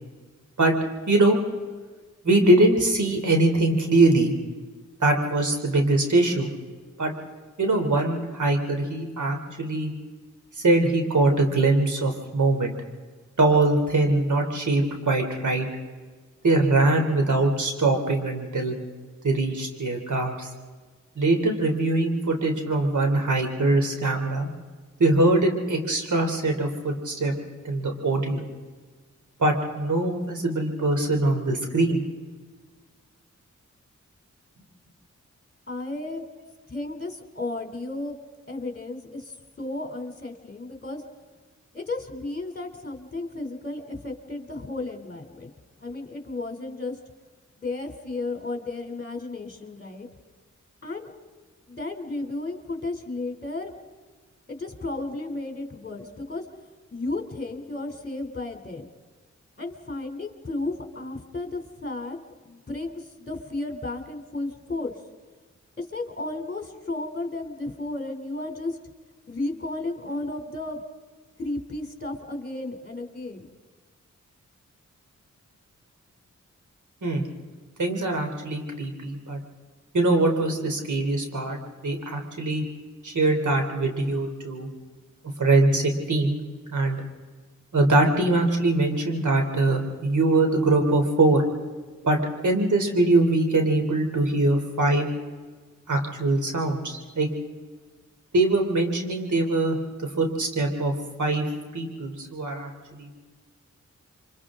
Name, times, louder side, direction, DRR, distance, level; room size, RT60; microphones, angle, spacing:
voice 1, 1.1-1.4 2.2-4.3 5.0-6.5 7.0-7.1 7.6-9.9 10.6-12.8 13.4-15.7 16.4-18.7 19.2-20.5 21.1-24.5 25.0-27.3 27.6-28.4 29.4-32.0 77.0-77.3 77.8-79.4 79.9-81.6 81.8-82.6 83.0-84.7 85.4-86.4 86.7-87.0 87.7-91.4 92.0-95.1 95.9-97.3 98.3-99.8 100.2-100.9 101.2-101.4 101.7-103.2, right 2 dB, 70° right, 3 dB, 3.2 m, -22 dB
voice 2, 35.7-36.2 36.7-38.1 38.5-41.0 41.7-45.5 45.8-47.0 47.6-50.1 50.8-51.1 51.7-53.7 54.5-56.4 56.9-58.8 59.6-62.2 62.4-65.0 65.8-68.8 69.3-70.8 71.4-73.5, left 2 dB, 30° left, 4 dB, 3.2 m, -33 dB
29.0 x 24.5 x 3.7 m, 1.4 s
cardioid pair, 50°, 31 cm